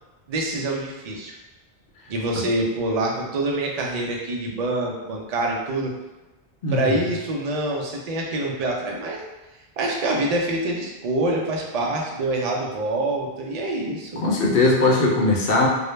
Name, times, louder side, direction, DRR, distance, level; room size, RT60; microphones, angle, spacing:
voice 1, 0.3-1.3 2.1-5.9 6.7-9.2 9.8-14.2, right 2 dB, 55° right, -1 dB, 0.4 m, -26 dB
voice 2, 6.6-7.0 14.2-15.7, left 2 dB, 65° left, -1 dB, 0.7 m, -19 dB
2.2 x 2.0 x 3.1 m, 1.1 s
omnidirectional pair, 1.1 m